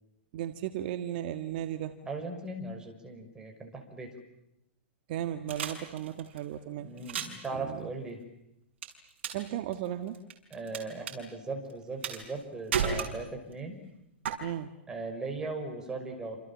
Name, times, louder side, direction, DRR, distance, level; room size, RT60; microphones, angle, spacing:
voice 1, 0.3-1.9 5.1-6.9 7.5-7.9 9.3-10.2 14.4-14.7, right 11 dB, 50° right, 8 dB, 1.7 m, -35 dB
voice 2, 2.0-4.1 6.8-8.2 10.5-13.8 14.9-16.4, right 3 dB, 10° right, 3 dB, 5.8 m, -38 dB
sound 1, 5.5-6.4 7.0-7.5 8.8-9.5 9.7-10.8 11.1-11.2 12.0-12.4 12.7-13.5 14.3-14.4, right 7 dB, 65° right, 6.3 m, -32 dB
29.0 x 27.5 x 7.4 m, 0.84 s
hypercardioid pair, 145°, 6 cm